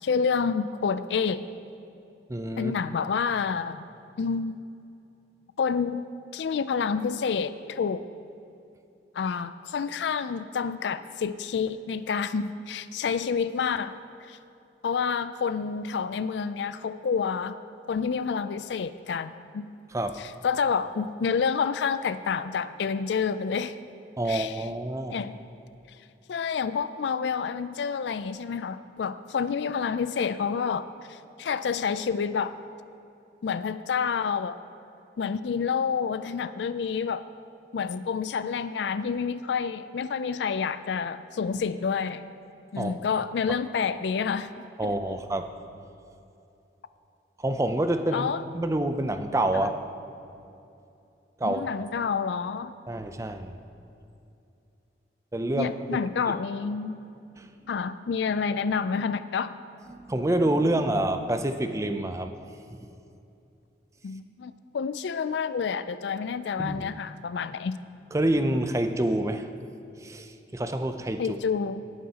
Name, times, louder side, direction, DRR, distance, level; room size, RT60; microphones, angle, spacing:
voice 1, 0.0-1.4 2.6-3.8 4.2-4.6 5.6-6.0 6.3-8.0 9.1-14.0 14.3-14.4 14.8-17.6 17.9-19.7 20.4-23.8 24.3-24.5 25.1-25.4 26.3-32.5 33.4-34.6 35.2-37.2 37.7-42.2 42.7-44.5 44.8-44.9 48.1-48.4 49.5-49.7 51.4-52.7 55.6-57.0 57.7-59.6 64.0-67.8 71.2-71.8, left 6 dB, 75° left, 13 dB, 0.4 m, -28 dB
voice 2, 2.3-2.7 19.9-20.2 24.2-25.2 42.8-43.0 44.8-45.5 47.4-49.8 51.4-51.7 52.9-53.6 55.3-56.0 57.4-57.5 59.9-62.3 62.7-62.8 66.6-66.9 68.1-69.5 70.0-71.4, right 1 dB, 15° right, 8 dB, 0.4 m, -27 dB
18.0 x 9.4 x 2.9 m, 2.7 s
head